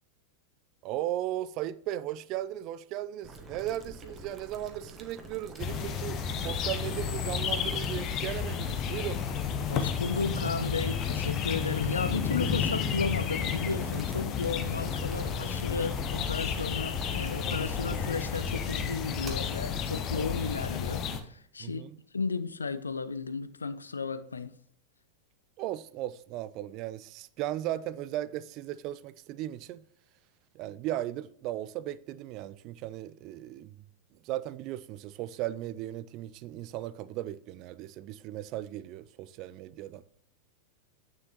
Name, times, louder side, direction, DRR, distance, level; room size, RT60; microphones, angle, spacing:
voice 1, 0.8-6.2 6.4-9.2 21.6-22.0 25.6-29.8 30.5-33.8 34.2-40.0, right 13 dB, 40° right, 0.4 m, -36 dB
Boiling, 3.2-19.3, right 2 dB, 20° right, 1.4 m, -46 dB
sound 1, 5.6-21.2, left 7 dB, 35° left, 0.9 m, -32 dB
voice 2, 9.7-21.8 22.1-24.5, left 4 dB, 75° left, 0.5 m, -34 dB
8.9 x 6.5 x 2.9 m
figure-of-eight pair, 90°, 0 cm